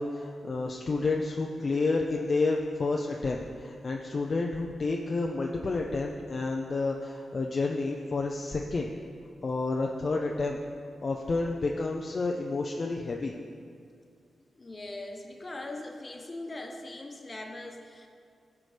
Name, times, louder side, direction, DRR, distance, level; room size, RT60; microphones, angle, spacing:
voice 1, 0.0-8.9 9.4-10.6 11.0-13.3, left 3 dB, 50° left, 0 dB, 0.5 m, -30 dB
voice 2, 14.5-18.1, left 2 dB, 35° left, 2 dB, 1.1 m, -41 dB
14.0 x 4.9 x 3.3 m, 2.3 s
cardioid pair, 55°, 0 cm